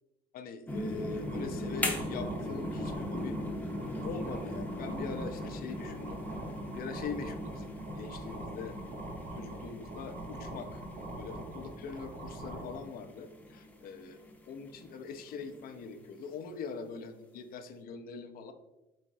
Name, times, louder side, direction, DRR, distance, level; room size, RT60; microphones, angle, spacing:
voice 1, 0.3-3.4 4.0-6.2 6.7-8.7 9.4-10.8 11.2-14.2 14.5-18.5, left 5 dB, 60° left, 7 dB, 0.5 m, -42 dB
sound 1, 0.7-15.6 16.1-16.2, left 1 dB, 10° left, 0.7 m, -40 dB
sound 2, 1.2-12.7, right 2 dB, 80° right, 1.2 m, -44 dB
4.8 x 3.0 x 2.6 m, 1.0 s
cardioid pair, 110°, 17 cm